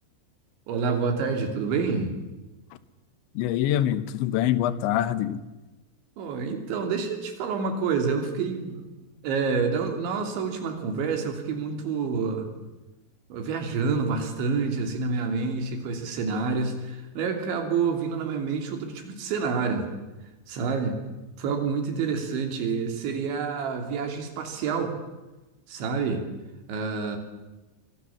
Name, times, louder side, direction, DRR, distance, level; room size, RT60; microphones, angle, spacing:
voice 1, 0.7-2.2 6.2-8.8 9.2-12.5 13.3-19.9 20.5-21.0 21.4-25.0 25.7-26.3 26.7-27.2, right 5 dB, 90° right, 5 dB, 5.3 m, -28 dB
voice 2, 3.4-5.4, left 11 dB, 90° left, 14 dB, 3.4 m, -25 dB
24.5 x 24.0 x 7.2 m, 1.1 s
omnidirectional pair, 5.1 m